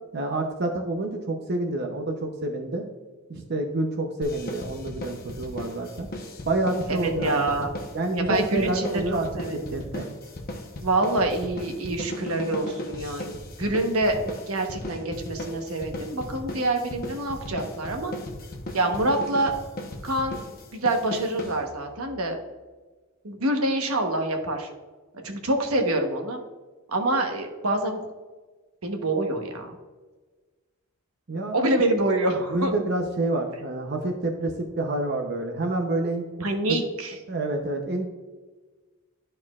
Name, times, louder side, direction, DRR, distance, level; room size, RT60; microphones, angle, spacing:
voice 1, 0.1-2.8 3.3-6.1 6.5-7.5 7.9-9.3 9.5-10.1 31.3-31.6 32.5-36.4 37.3-38.1, right 2 dB, 50° right, 3 dB, 0.7 m, -28 dB
sound 1, 4.2-22.0, left 1 dB, 45° left, 0.9 m, -37 dB
voice 2, 6.9-7.7 8.1-9.0 9.3-9.8 10.8-13.3 13.6-18.1 18.7-19.5 20.0-20.3 20.7-22.4 23.2-24.7 25.1-26.4 26.9-28.0 28.8-29.8 31.5-32.7 36.4-37.1, right 2 dB, 90° right, 4 dB, 1.1 m, -26 dB
12.5 x 4.4 x 2.4 m, 1.3 s
head